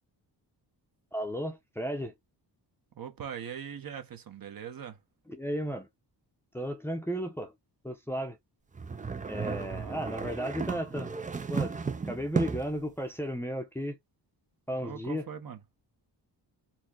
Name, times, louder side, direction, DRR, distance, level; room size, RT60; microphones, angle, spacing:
voice 1, 1.1-2.1 5.3-5.9 6.5-7.5 7.8-8.4 9.3-11.1 11.5-11.7 12.0-14.0 14.7-15.3, equal, 5° left, 0.8 m, -34 dB
voice 2, 3.0-5.0 9.4-10.0 14.8-15.6, right 8 dB, 55° right, 1.2 m, -41 dB
sound 1, 8.7-12.8, right 5 dB, 20° right, 0.5 m, -34 dB
4.5 x 2.4 x 4.4 m
wide cardioid pair, 130°, 42 cm